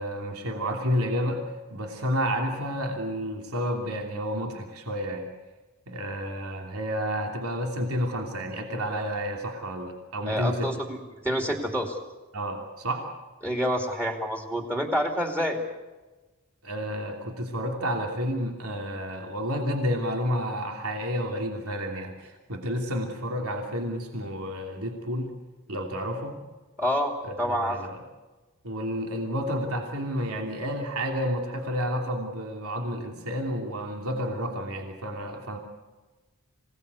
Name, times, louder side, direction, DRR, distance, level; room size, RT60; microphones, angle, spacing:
voice 1, 0.0-1.4 1.7-5.3 5.9-10.7 12.3-13.1 16.6-25.3 25.7-26.4 27.2-28.0 28.6-35.6, equal, 80° right, 2 dB, 2.9 m, -30 dB
voice 2, 10.3-11.0 11.2-12.0 13.4-15.6 26.8-27.8, equal, 10° right, 2 dB, 2.5 m, -27 dB
26.0 x 18.0 x 8.2 m, 1.2 s
head